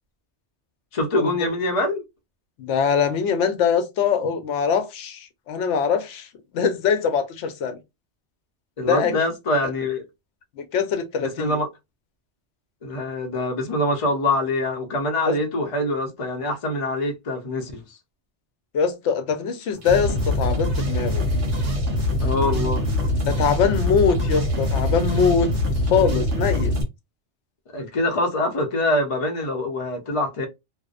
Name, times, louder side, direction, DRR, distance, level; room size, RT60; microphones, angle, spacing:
voice 1, 0.9-2.0 8.8-10.0 11.2-11.7 12.8-18.0 22.2-22.8 27.7-30.5, left 1 dB, 40° left, 0.6 m, -24 dB
voice 2, 2.6-6.3 6.5-7.8 8.8-9.2 10.6-11.6 15.3-15.4 18.7-21.3 23.3-25.5 25.9-26.7, left 6 dB, 80° left, 0.9 m, -22 dB
sound 1, 19.8-26.8, left 1 dB, 85° right, 1.2 m, -23 dB
2.6 x 2.0 x 2.3 m
omnidirectional pair, 1.2 m